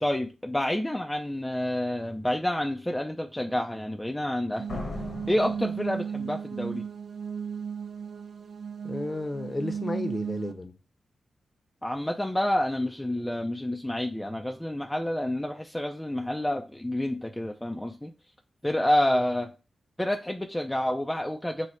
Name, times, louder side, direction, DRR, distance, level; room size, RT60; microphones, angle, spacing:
voice 1, 0.0-4.8 5.3-6.9 11.8-18.1 18.6-19.5 20.0-21.7, left 1 dB, 10° left, 0.4 m, -28 dB
sound 1, 4.5-10.5, right 7 dB, 70° right, 0.4 m, -35 dB
Slam, 4.7-6.6, left 2 dB, 65° left, 1.1 m, -39 dB
voice 2, 8.8-10.7 19.1-19.3, left 2 dB, 35° left, 0.7 m, -33 dB
4.8 x 2.1 x 4.2 m
cardioid pair, 50°, 0 cm